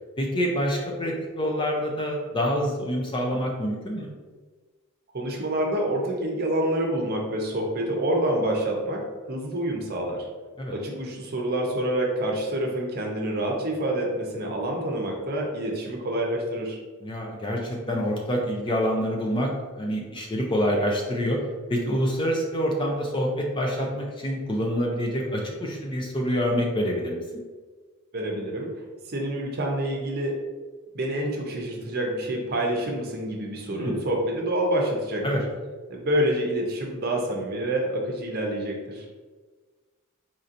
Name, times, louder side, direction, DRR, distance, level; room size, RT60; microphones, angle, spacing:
voice 1, 0.2-4.1 10.6-10.7 17.0-19.5 19.8-21.4 21.7-27.2 33.7-34.1 35.2-35.4, equal, 20° left, 0 dB, 0.4 m, -26 dB
voice 2, 5.1-10.3 10.7-16.8 28.1-28.8 29.1-30.4 30.9-35.2 35.9-39.0, right 1 dB, 45° right, 0 dB, 0.7 m, -27 dB
4.3 x 2.8 x 2.5 m, 1.4 s
head